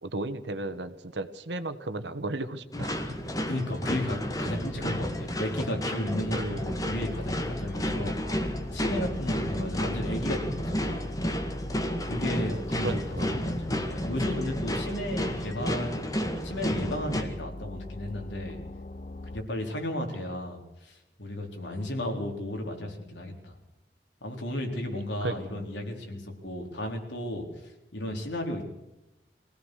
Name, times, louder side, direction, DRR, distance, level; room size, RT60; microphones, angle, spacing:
voice 1, 0.0-3.2 6.3-6.6 12.8-13.3 25.2-25.4, right 2 dB, 80° right, 11 dB, 1.6 m, -34 dB
sound 1, 2.7-17.2, equal, 20° left, 2.1 m, -32 dB
sound 2, 2.8-19.4, left 2 dB, 40° left, 0.9 m, -41 dB
voice 2, 3.5-8.2 8.7-11.1 12.0-18.6 19.3-23.6 24.2-28.6, left 1 dB, 90° left, 2 dB, 4.5 m, -34 dB
24.0 x 17.0 x 6.6 m, 0.96 s
head